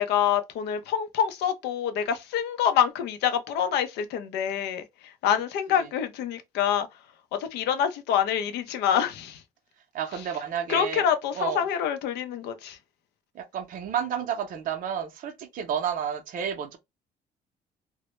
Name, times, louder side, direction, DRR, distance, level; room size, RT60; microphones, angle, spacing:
voice 1, 0.0-6.9 7.4-9.4 10.7-12.8, left 9 dB, 80° left, 0.5 m, -26 dB
voice 2, 9.9-11.1 11.3-11.6 13.3-16.8, right 8 dB, 55° right, 0.5 m, -31 dB
2.1 x 2.0 x 2.9 m
cardioid pair, 110°, 17 cm